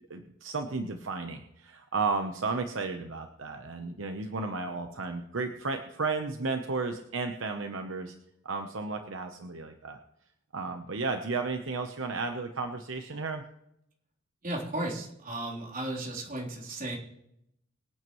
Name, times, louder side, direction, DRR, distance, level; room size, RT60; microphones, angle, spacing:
voice 1, 0.1-8.1 8.4-10.0 10.5-13.4, right 4 dB, 70° right, 5 dB, 0.9 m, -33 dB
voice 2, 14.4-17.0, right 1 dB, 40° right, -3 dB, 3.6 m, -35 dB
24.5 x 9.2 x 3.1 m, 0.78 s
head